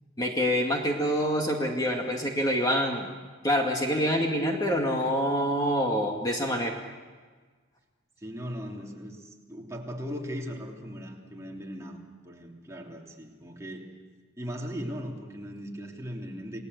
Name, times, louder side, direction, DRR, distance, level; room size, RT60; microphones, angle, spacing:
voice 1, 0.2-3.1 3.4-6.8, equal, 20° left, 1 dB, 2.2 m, -26 dB
voice 2, 8.2-13.9 14.4-16.7, equal, 15° right, -1 dB, 3.2 m, -38 dB
29.0 x 19.5 x 8.2 m, 1.5 s
head